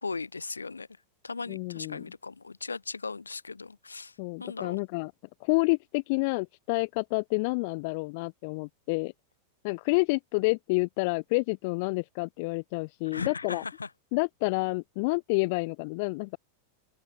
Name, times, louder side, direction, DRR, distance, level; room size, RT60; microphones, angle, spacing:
voice 1, 0.0-0.9 1.2-4.1 4.4-4.8 13.1-13.9, left 4 dB, 80° left, 4.4 m, -37 dB
voice 2, 1.5-2.0 4.2-5.1 5.4-9.1 9.6-13.6 14.1-16.4, left 28 dB, 45° left, 1.8 m, -29 dB
open air
figure-of-eight pair, 90°, 0 cm